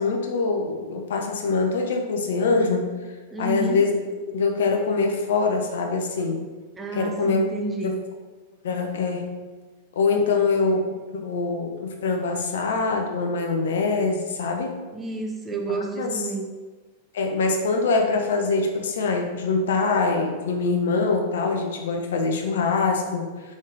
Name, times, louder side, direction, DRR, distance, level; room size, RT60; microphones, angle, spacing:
voice 1, 0.0-2.9 3.4-4.0 4.3-6.4 6.9-7.4 7.8-8.0 8.6-9.3 10.0-10.8 11.2-14.8 15.7-16.2 17.1-23.6, left 4 dB, 65° left, 3 dB, 0.5 m, -24 dB
voice 2, 3.3-3.8 6.8-8.0 10.1-10.4 14.9-16.5, right 3 dB, 15° right, 2 dB, 0.5 m, -30 dB
3.7 x 3.5 x 2.6 m, 1.3 s
figure-of-eight pair, 95°, 0 cm